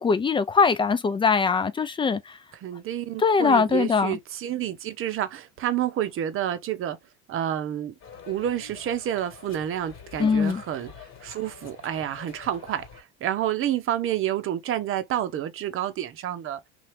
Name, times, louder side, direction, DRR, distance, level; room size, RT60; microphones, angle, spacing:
voice 1, 0.0-2.4 3.2-4.2 10.2-10.6, left 5 dB, 15° left, 0.4 m, -22 dB
voice 2, 2.5-7.0 7.3-7.9 8.2-16.6, right 11 dB, 40° right, 0.7 m, -29 dB
sound 1, 8.0-13.0, left 7 dB, 35° left, 1.6 m, -45 dB
2.8 x 2.4 x 3.1 m
supercardioid pair, 100°, 34 cm